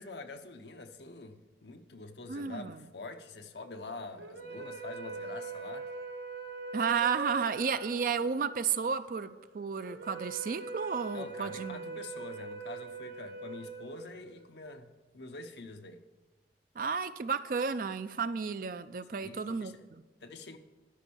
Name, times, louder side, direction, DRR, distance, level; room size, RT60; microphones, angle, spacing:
voice 1, 0.0-5.9 11.1-16.0 19.1-19.8 20.2-20.6, left 3 dB, 70° left, 0.8 m, -45 dB
voice 2, 2.3-2.8 6.7-12.0 16.8-20.0, right 6 dB, 50° right, 0.4 m, -32 dB
sound 1, 4.2-14.6, right 4 dB, 70° right, 0.7 m, -42 dB
12.0 x 5.4 x 7.0 m
head